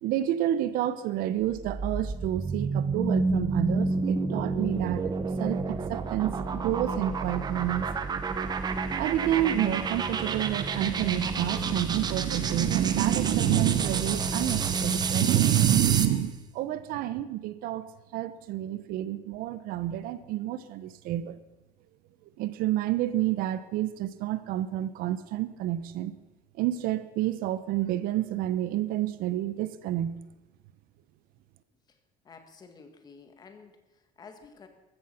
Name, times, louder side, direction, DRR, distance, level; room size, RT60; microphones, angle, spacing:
voice 1, 0.0-5.0 5.4-7.9 8.9-17.8 18.1-21.4 22.4-26.1 26.6-30.2, right 13 dB, 60° right, 14 dB, 0.9 m, -28 dB
sound 1, 1.4-16.2, right 4 dB, 25° right, 1.0 m, -30 dB
voice 2, 32.2-34.7, left 5 dB, 25° left, 7 dB, 1.8 m, -51 dB
14.5 x 14.0 x 5.8 m, 1.0 s
cardioid pair, 160°, 16 cm